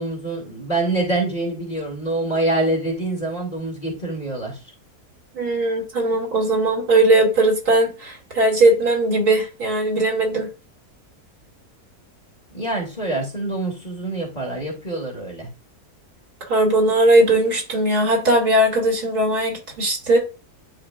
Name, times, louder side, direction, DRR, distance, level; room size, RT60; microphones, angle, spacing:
voice 1, 0.0-4.6 12.5-15.5, right 2 dB, 25° left, 0 dB, 2.5 m, -25 dB
voice 2, 5.3-10.5 16.5-20.2, right 2 dB, 75° right, -1 dB, 3.1 m, -19 dB
11.0 x 4.8 x 2.5 m, 0.31 s
omnidirectional pair, 1.7 m